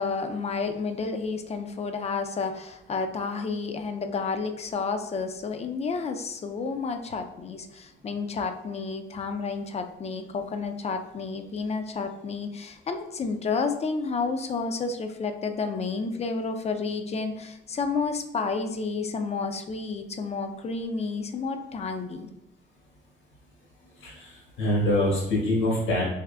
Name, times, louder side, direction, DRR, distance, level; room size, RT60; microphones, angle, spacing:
voice 1, 0.0-22.3, left 4 dB, 30° left, 7 dB, 0.5 m, -31 dB
voice 2, 24.0-26.0, left 1 dB, 75° left, -5 dB, 1.4 m, -25 dB
4.9 x 3.1 x 2.3 m, 0.85 s
cardioid pair, 90°, 20 cm